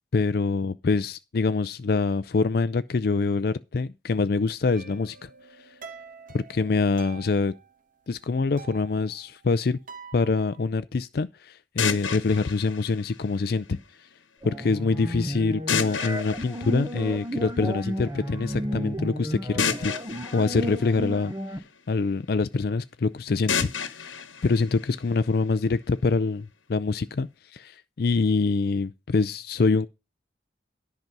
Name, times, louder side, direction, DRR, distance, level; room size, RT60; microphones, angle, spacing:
voice 1, 0.1-5.3 6.3-7.5 8.1-9.8 10.1-13.8 14.4-20.0 20.3-21.3 21.9-29.9, left 4 dB, 55° left, 0.4 m, -25 dB
sound 1, 4.7-8.0 8.3-10.7, right 5 dB, 45° right, 1.0 m, -47 dB
sound 2, 11.8-13.8 15.7-17.6 19.6-21.8 23.5-25.5, left 7 dB, 90° left, 1.1 m, -32 dB
sound 3, 14.4-21.6, equal, 15° right, 0.9 m, -33 dB
10.5 x 5.9 x 5.3 m
head